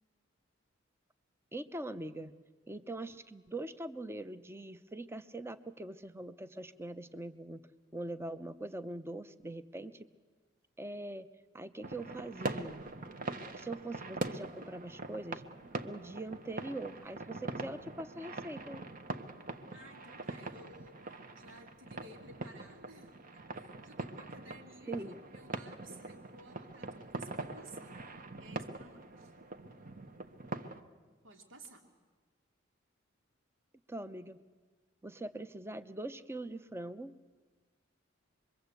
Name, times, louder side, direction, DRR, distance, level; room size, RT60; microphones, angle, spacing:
voice 1, 1.5-2.3 2.7-7.6 7.9-10.1 10.8-11.3 11.5-12.8 13.5-15.4 15.8-18.8 24.9-25.2 33.9-34.4 35.0-37.1, right 2 dB, 15° right, 11 dB, 0.8 m, -42 dB
sound 1, 11.8-30.8, right 2 dB, 45° right, 1.1 m, -43 dB
voice 2, 19.7-23.1 23.5-29.3 31.0-31.8, right 1 dB, 75° right, 3 dB, 2.7 m, -56 dB
26.0 x 22.5 x 8.3 m, 1.4 s
head